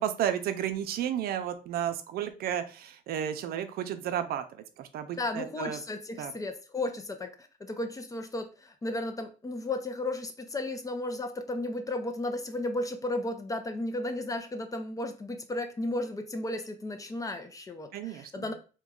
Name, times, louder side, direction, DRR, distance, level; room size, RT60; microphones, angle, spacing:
voice 1, 0.0-5.8 6.2-6.3 17.9-18.5, right 10 dB, 65° right, 9 dB, 0.5 m, -32 dB
voice 2, 5.2-7.3 7.6-18.5, left 2 dB, 20° left, 7 dB, 0.5 m, -34 dB
3.0 x 2.2 x 3.6 m, 0.35 s
cardioid pair, 110°, 17 cm